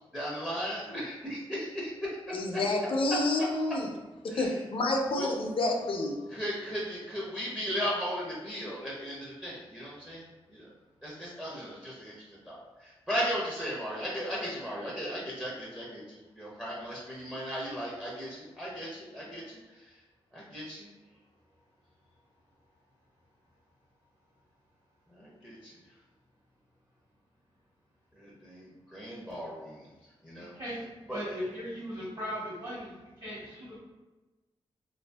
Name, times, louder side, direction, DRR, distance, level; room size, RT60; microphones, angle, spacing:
voice 1, 0.1-2.4 4.3-4.6 5.1-5.3 6.3-10.7 11.0-19.8 20.3-20.9 25.1-25.8 28.2-29.9 30.2-30.5 31.1-31.4, equal, 10° right, -6 dB, 0.5 m, -37 dB
voice 2, 2.3-3.9 4.4-6.2, left 2 dB, 60° left, 1 dB, 0.4 m, -29 dB
voice 3, 31.1-33.8, equal, 50° right, -12 dB, 1.2 m, -38 dB
2.5 x 2.3 x 2.2 m, 1.2 s
wide cardioid pair, 110°, 10 cm